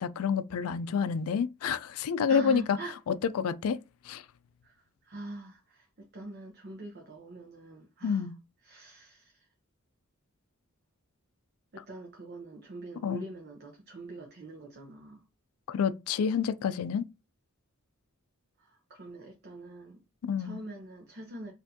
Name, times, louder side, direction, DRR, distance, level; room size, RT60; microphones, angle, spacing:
voice 1, 0.0-2.6 3.1-3.8 4.1-4.2 8.0-8.3 13.0-13.2 15.7-17.0 20.2-20.6, left 6 dB, 85° left, 0.4 m, -28 dB
voice 2, 2.3-3.0 4.6-8.3 8.6-9.5 11.7-15.3 18.6-20.0 20.4-21.5, right 2 dB, 50° right, 0.7 m, -44 dB
4.3 x 2.6 x 2.7 m
head